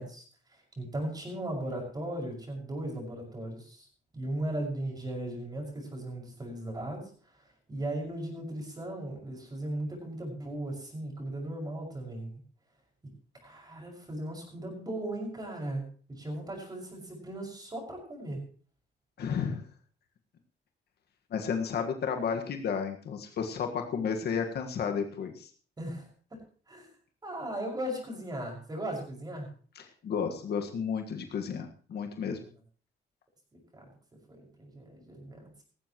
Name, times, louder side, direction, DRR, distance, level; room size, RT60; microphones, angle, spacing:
voice 1, 0.0-3.9 4.1-12.3 13.4-18.4 25.8-26.1 26.7-26.9 27.2-29.5 32.4-32.5 33.5-33.9 34.3-35.6, right 1 dB, 20° right, 0 dB, 6.1 m, -37 dB
voice 2, 19.2-19.6 21.3-25.5 29.8-32.4, left 6 dB, 65° left, 4 dB, 1.7 m, -32 dB
18.0 x 15.0 x 3.1 m, 0.41 s
cardioid pair, 135°, 18 cm